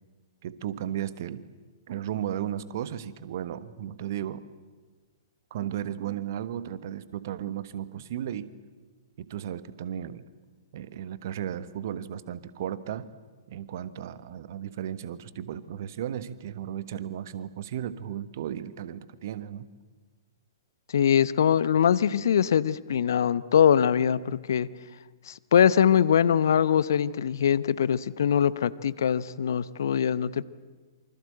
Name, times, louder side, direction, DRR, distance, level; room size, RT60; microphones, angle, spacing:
voice 1, 0.4-1.4 1.9-4.4 5.5-8.5 9.2-10.2 10.7-13.1 13.5-19.7, right 10 dB, 50° right, 14 dB, 1.4 m, -35 dB
voice 2, 20.9-24.7 25.3-30.4, left 8 dB, 60° left, 17 dB, 0.9 m, -22 dB
27.5 x 25.0 x 8.0 m, 1.4 s
figure-of-eight pair, 110°, 2 cm